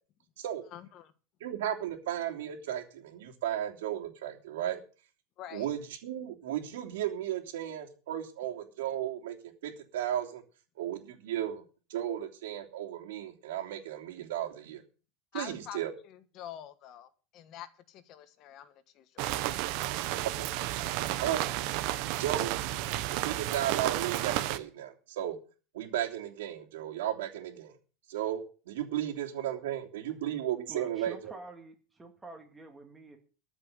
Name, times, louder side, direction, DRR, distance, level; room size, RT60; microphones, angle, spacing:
voice 1, 0.7-1.1 5.4-5.7 15.3-19.4, left 11 dB, 35° left, 13 dB, 1.3 m, -46 dB
voice 2, 1.4-4.8 5.5-9.3 9.6-10.4 10.8-11.6 11.9-14.8 15.3-15.9 20.2-20.5 21.2-21.5 22.2-22.5 23.2-25.4 25.7-27.7 28.1-31.3, right 11 dB, 90° right, 3 dB, 3.1 m, -34 dB
sound 1, 19.2-24.6, right 15 dB, 45° right, 1.0 m, -32 dB
voice 3, 30.7-33.2, right 2 dB, 10° right, 4 dB, 2.2 m, -47 dB
14.5 x 6.0 x 9.5 m, 0.37 s
supercardioid pair, 175°, 0 cm